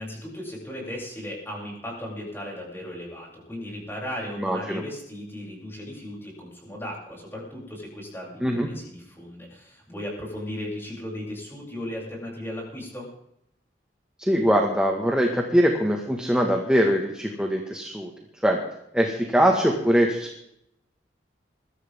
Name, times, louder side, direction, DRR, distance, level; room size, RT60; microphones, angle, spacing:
voice 1, 0.0-13.1, left 1 dB, 15° left, -3 dB, 7.9 m, -36 dB
voice 2, 4.4-4.8 8.4-8.7 14.2-18.1 18.4-18.6 18.9-20.5, equal, 5° right, 1 dB, 1.8 m, -22 dB
22.0 x 15.0 x 3.8 m, 0.77 s
head